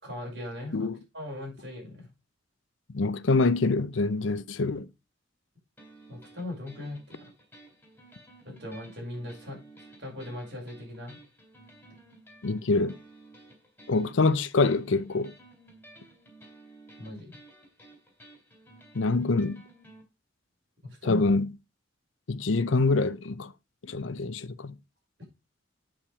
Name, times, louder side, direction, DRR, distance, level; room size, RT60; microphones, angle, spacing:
voice 1, 0.0-0.9 1.1-2.1 6.1-7.3 8.4-9.6 10.0-11.2 17.0-17.4 20.8-21.3, left 1 dB, 60° right, 5.8 m, -39 dB
voice 2, 2.9-4.9 12.4-13.0 13.9-15.3 18.9-19.6 21.0-21.5 22.3-23.5 23.8-24.7, left 3 dB, 90° left, 0.6 m, -25 dB
sound 1, 5.8-20.0, right 2 dB, 10° left, 3.3 m, -54 dB
8.7 x 5.8 x 4.9 m
head